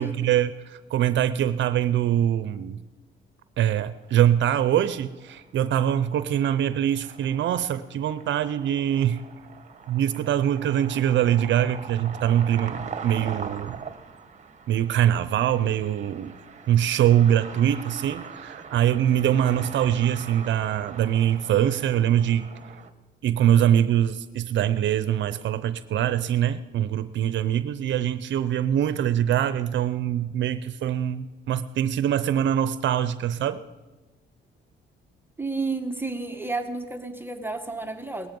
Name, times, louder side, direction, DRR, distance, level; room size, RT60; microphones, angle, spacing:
voice 1, 0.0-2.8 3.6-9.2 9.9-13.8 14.7-16.3 16.7-22.5 23.2-33.6, right 10 dB, 70° right, 13 dB, 0.6 m, -23 dB
sound 1, 4.1-22.9, right 6 dB, 35° right, 1.3 m, -42 dB
voice 2, 35.4-38.3, right 3 dB, 10° right, 5 dB, 1.1 m, -31 dB
18.5 x 13.5 x 5.4 m, 1.2 s
cardioid pair, 90°, 20 cm